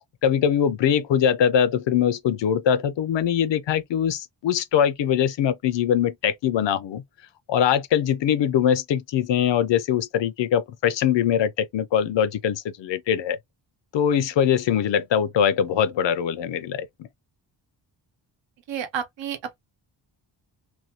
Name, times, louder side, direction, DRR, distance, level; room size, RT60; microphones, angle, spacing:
voice 1, 0.2-7.0 7.5-13.4 13.9-16.9, left 9 dB, 70° left, 0.6 m, -22 dB
voice 2, 18.7-19.6, right 8 dB, 75° right, 0.8 m, -31 dB
2.7 x 2.2 x 2.7 m
wide cardioid pair, 165°, 46 cm